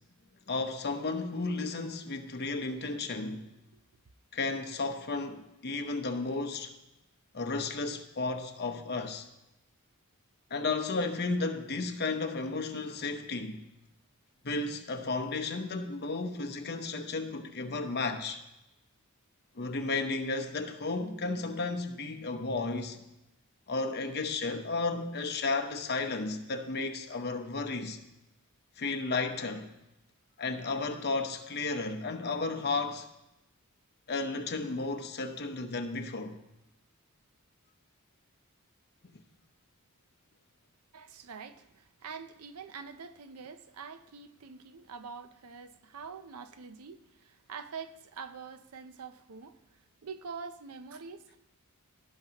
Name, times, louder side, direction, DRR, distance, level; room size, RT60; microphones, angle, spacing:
voice 1, 0.5-3.5 4.3-6.7 7.3-9.3 10.5-13.6 14.4-18.4 19.5-23.0 23.7-28.0 28.8-29.7 30.4-33.1 34.1-36.4, left 3 dB, 50° left, 0.9 m, -33 dB
voice 2, 40.9-49.6 50.0-51.4, right 5 dB, 90° right, 0.6 m, -45 dB
17.0 x 7.4 x 2.9 m
head